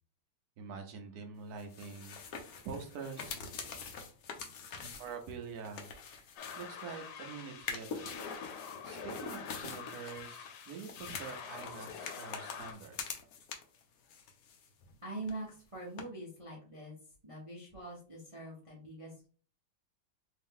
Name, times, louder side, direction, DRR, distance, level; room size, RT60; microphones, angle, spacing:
voice 1, 0.6-3.5 4.8-5.9 6.6-8.2 8.8-13.0, right 5 dB, 65° right, 4 dB, 1.0 m, -46 dB
sound 1, 1.6-7.1 7.5-13.8 14.1-15.0 15.2-15.3 16.0-16.1, left 5 dB, 70° left, 0.9 m, -45 dB
sound 2, 6.4-12.7, left 7 dB, 90° left, 1.5 m, -47 dB
voice 2, 15.0-16.9 17.2-19.3, right 2 dB, 35° right, -4 dB, 0.5 m, -44 dB
3.5 x 2.8 x 3.6 m, 0.42 s
omnidirectional pair, 2.3 m